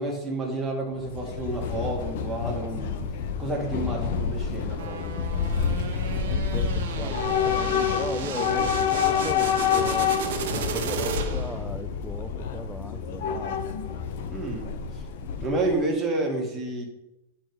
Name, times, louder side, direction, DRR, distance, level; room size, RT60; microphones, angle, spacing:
voice 1, 0.0-3.0 3.4-5.1 8.4-8.7 14.3-14.7 14.9-15.0 15.4-16.8, right 2 dB, 15° right, 1.9 m, -30 dB
Train / Subway metro underground, 0.9-15.8, left 7 dB, 65° left, 0.9 m, -28 dB
sound 1, 4.8-11.6, right 6 dB, 70° right, 1.1 m, -34 dB
voice 2, 5.8-10.2 10.5-13.8, left 1 dB, 5° left, 0.4 m, -38 dB
9.0 x 4.6 x 4.6 m
supercardioid pair, 150°, 0 cm